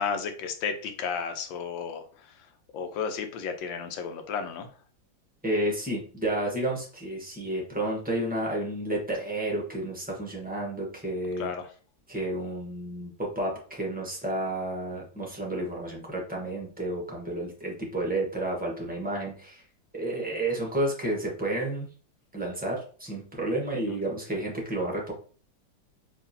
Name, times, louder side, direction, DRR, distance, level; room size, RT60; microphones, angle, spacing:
voice 1, 0.0-2.0 2.7-4.7 11.4-11.7 23.9-24.0, left 6 dB, 85° left, 7 dB, 1.4 m, -32 dB
voice 2, 5.4-11.5 12.1-19.6 19.9-21.9 22.3-25.1, right 1 dB, 10° right, -2 dB, 0.4 m, -31 dB
4.7 x 2.9 x 2.6 m, 0.41 s
omnidirectional pair, 2.0 m